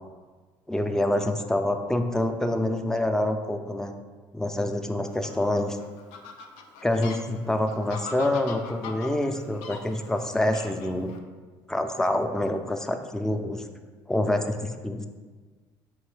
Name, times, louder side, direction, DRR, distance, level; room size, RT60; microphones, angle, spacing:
voice 1, 0.7-3.9 4.3-5.8 6.8-11.2 11.7-13.6 14.1-15.1, left 1 dB, 5° left, 6 dB, 0.3 m, -26 dB
Fowl, 5.0-11.2, left 4 dB, 85° left, 0.4 m, -42 dB
4.5 x 3.0 x 3.2 m, 1.4 s
supercardioid pair, 85°, 11 cm